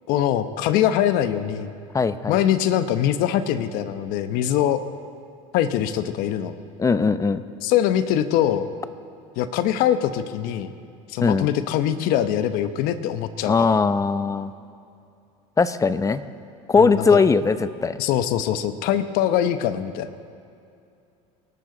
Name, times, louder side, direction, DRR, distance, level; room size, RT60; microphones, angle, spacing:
voice 1, 0.1-1.7 2.3-4.8 5.5-6.6 7.6-8.7 9.4-10.7 11.1-13.7 16.7-17.2 18.0-20.1, left 11 dB, 65° left, 11 dB, 1.0 m, -23 dB
voice 2, 1.9-2.4 6.8-7.4 11.2-11.5 13.5-14.5 15.6-16.2 16.7-18.0, left 4 dB, 20° left, 13 dB, 0.8 m, -20 dB
29.0 x 12.0 x 4.0 m, 2.5 s
supercardioid pair, 90°, 16 cm